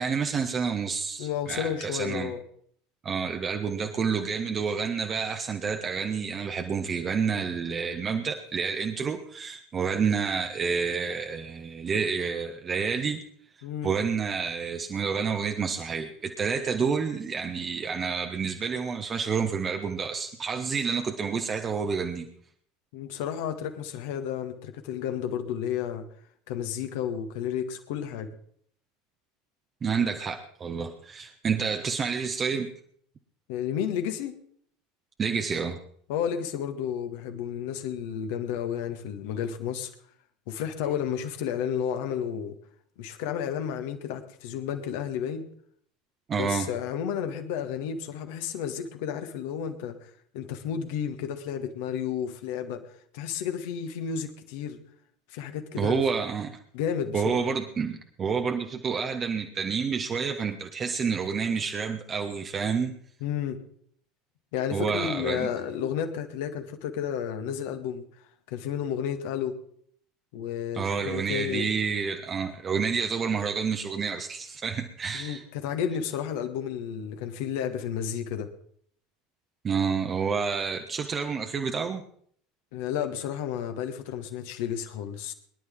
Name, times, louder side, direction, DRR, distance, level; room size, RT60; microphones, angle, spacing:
voice 1, 0.0-2.3 3.0-13.2 13.8-22.3 29.8-32.7 35.2-35.8 46.3-46.7 55.8-56.5 57.1-62.9 64.7-65.5 70.7-75.4 79.6-82.0, right 6 dB, 30° right, 5 dB, 1.3 m, -29 dB
voice 2, 1.2-2.4 13.6-14.0 22.9-26.0 26.5-28.3 33.5-34.4 36.1-39.9 40.5-42.5 43.0-45.5 46.3-52.9 53.1-54.8 55.3-56.0 56.7-57.5 63.2-63.6 64.5-68.0 68.5-69.6 70.3-71.7 75.1-78.5 82.7-85.3, left 8 dB, 60° left, 6 dB, 1.8 m, -32 dB
23.5 x 11.5 x 3.8 m, 0.62 s
figure-of-eight pair, 70°, 0 cm